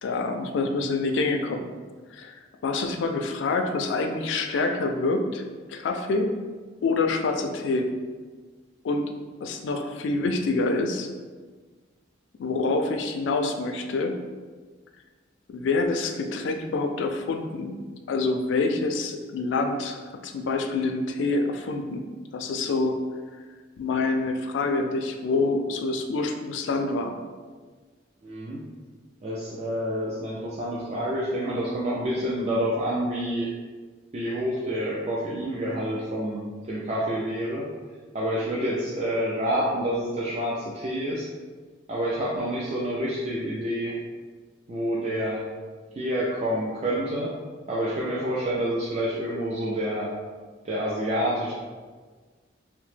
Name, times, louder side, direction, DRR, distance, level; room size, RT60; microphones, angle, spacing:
voice 1, 0.0-1.7 2.1-2.3 2.6-5.4 5.7-6.3 6.8-7.9 8.8-9.1 9.4-11.1 12.4-14.2 15.5-17.8 18.1-22.0 22.3-23.0 23.8-27.1, left 3 dB, 70° left, 5 dB, 0.3 m, -26 dB
voice 2, 28.2-28.6 29.2-33.5 34.1-37.6 38.1-41.3 41.9-43.9 44.7-45.4 46.0-47.3 47.7-50.1 50.6-51.5, equal, 35° right, -6 dB, 0.3 m, -28 dB
2.8 x 2.0 x 3.2 m, 1.4 s
head